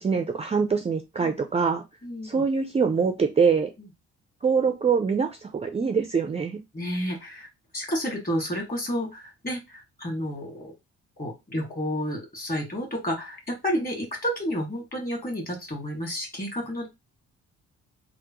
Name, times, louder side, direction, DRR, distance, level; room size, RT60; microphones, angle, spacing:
voice 1, 0.0-1.8 2.2-3.7 4.4-6.6, right 5 dB, 20° right, 0.4 m, -24 dB
voice 2, 2.0-2.4 6.7-7.5 7.7-10.7 11.2-16.9, equal, 30° left, 1.8 m, -30 dB
3.5 x 2.0 x 3.0 m
cardioid pair, 90°, 30 cm